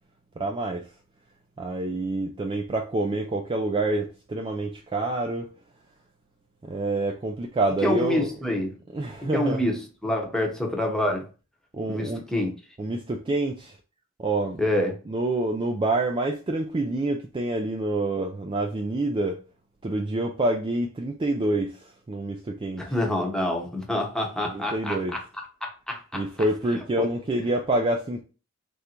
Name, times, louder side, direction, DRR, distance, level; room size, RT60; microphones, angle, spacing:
voice 1, 0.4-0.9 1.6-5.5 6.6-8.3 8.9-9.6 11.7-12.2 12.8-13.8 14.2-14.6 15.1-19.4 19.8-22.9 24.4-25.2 26.1-28.2, right 2 dB, 25° right, 0.3 m, -27 dB
voice 2, 7.8-8.7 9.3-11.3 11.9-12.5 14.6-15.0 22.8-25.2 25.6-26.2 27.0-27.1, left 1 dB, 5° left, 0.8 m, -27 dB
3.4 x 2.6 x 4.3 m
head